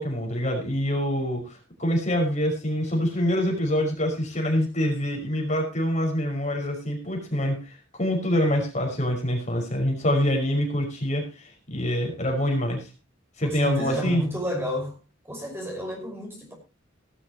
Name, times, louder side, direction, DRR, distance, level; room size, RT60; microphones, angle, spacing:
voice 1, 0.0-7.6 7.9-11.3 11.7-12.8 13.4-14.2, equal, 40° left, 5.6 m, -25 dB
voice 2, 13.4-14.9 15.3-16.5, equal, 10° right, 5.3 m, -30 dB
17.5 x 12.5 x 3.0 m
head